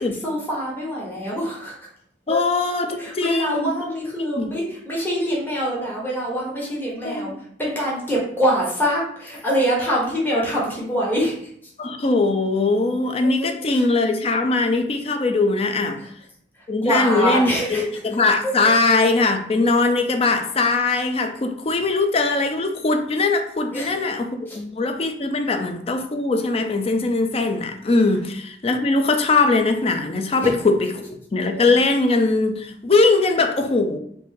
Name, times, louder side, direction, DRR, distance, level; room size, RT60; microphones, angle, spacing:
voice 1, 0.2-1.7 2.3-2.4 3.0-7.3 7.6-11.4 13.7-13.8 16.8-17.8 18.4-18.5 23.7-23.9 24.5-24.6 30.4-30.5, equal, 10° left, -5 dB, 1.1 m, -24 dB
voice 2, 2.3-3.7 4.4-4.5 7.0-7.3 11.8-16.0 16.7-34.0, left 3 dB, 35° left, 6 dB, 0.4 m, -21 dB
4.2 x 2.7 x 3.7 m, 0.67 s
head